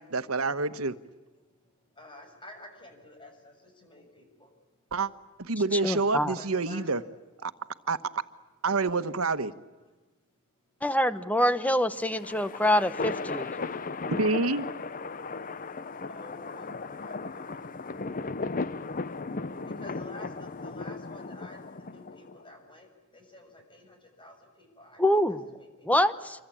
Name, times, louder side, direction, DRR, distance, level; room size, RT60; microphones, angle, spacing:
voice 1, 0.1-0.9 4.9-5.1 5.4-7.0 7.4-7.5 7.9-8.2 8.6-9.5 14.2-14.7, right 3 dB, 90° right, 11 dB, 1.3 m, -27 dB
voice 2, 1.4-4.9 5.6-6.8 9.8-9.9 10.2-10.8 11.3-11.8 15.1-26.3, left 1 dB, 25° left, 4 dB, 6.9 m, -52 dB
voice 3, 5.7-6.4 10.8-13.5 25.0-25.5 25.8-26.4, left 1 dB, 5° left, 12 dB, 1.1 m, -25 dB
sound 1, 12.0-22.4, left 3 dB, 40° left, 0.8 m, -36 dB
27.5 x 24.0 x 8.7 m, 1.2 s
head